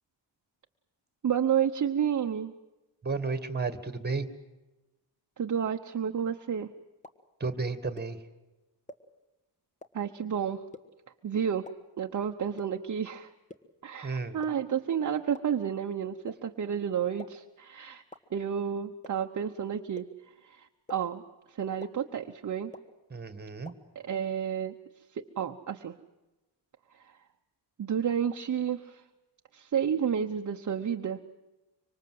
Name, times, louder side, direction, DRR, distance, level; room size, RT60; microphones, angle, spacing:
voice 1, 1.2-2.5 5.4-6.7 9.9-10.6 11.2-11.7 12.0-13.3 13.8-18.0 18.3-20.1 20.4-21.2 21.5-22.7 23.9-24.7 25.1-26.0 26.9-27.1 27.8-29.0 29.5-31.2, right 8 dB, 40° right, 4 dB, 0.9 m, -31 dB
voice 2, 3.0-4.3 7.4-8.2 14.0-14.4 23.1-23.7, right 4 dB, 20° right, 11 dB, 1.8 m, -32 dB
sound 1, 7.0-7.1 8.0-8.1 8.9-9.0 9.8-9.9 10.7-10.8 11.6-11.7 12.6-12.7 13.5-13.6 14.4-14.5 15.3-15.4 16.3-16.4 17.2-17.3 18.1-18.2 19.0-19.1 20.0-20.1 20.9-21.0 21.8-21.9 22.7-22.8 23.6-23.7, left 2 dB, 15° left, 1.4 m, -43 dB
25.5 x 25.0 x 7.8 m, 1.1 s
wide cardioid pair, 150°, 44 cm